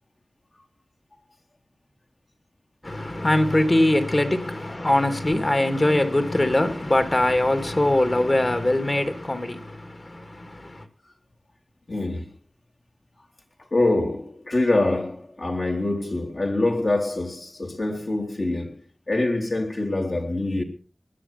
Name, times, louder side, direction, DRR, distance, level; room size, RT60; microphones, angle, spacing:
voice 1, 2.8-10.8, left 1 dB, 40° left, 2.6 m, -22 dB
voice 2, 11.9-12.3 13.7-18.8 19.1-20.6, left 2 dB, 55° left, 3.5 m, -25 dB
20.5 x 11.0 x 5.8 m
wide cardioid pair, 65°, 0 cm